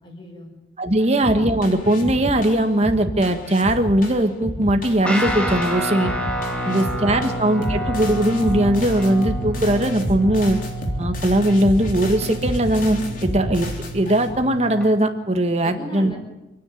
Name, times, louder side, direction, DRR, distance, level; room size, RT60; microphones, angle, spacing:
voice 1, 0.0-0.5 1.0-1.1 6.5-7.4 15.6-16.2, equal, 25° left, 1 dB, 5.9 m, -37 dB
voice 2, 0.8-6.1 6.7-10.6 11.0-16.1, right 1 dB, 35° right, 7 dB, 1.7 m, -20 dB
sound 1, 1.2-14.4, equal, 50° left, 3.5 m, -30 dB
Guitar, 5.0-14.9, right 1 dB, 5° left, 2.5 m, -29 dB
28.0 x 10.0 x 9.3 m, 1.0 s
head